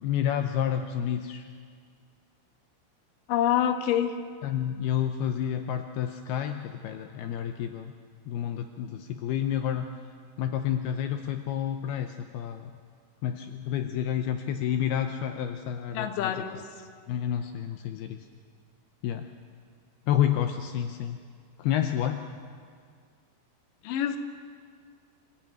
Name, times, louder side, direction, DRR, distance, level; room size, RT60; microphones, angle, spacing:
voice 1, 0.0-1.5 4.4-7.9 8.3-9.9 10.4-12.7 13.2-16.6 17.1-18.2 19.0-19.3 20.1-21.2 21.6-22.3, left 10 dB, 85° left, 7 dB, 2.2 m, -29 dB
voice 2, 3.3-4.1 15.9-16.5 23.8-24.2, left 10 dB, 65° left, 7 dB, 2.2 m, -26 dB
27.0 x 15.0 x 9.2 m, 2.1 s
omnidirectional pair, 5.5 m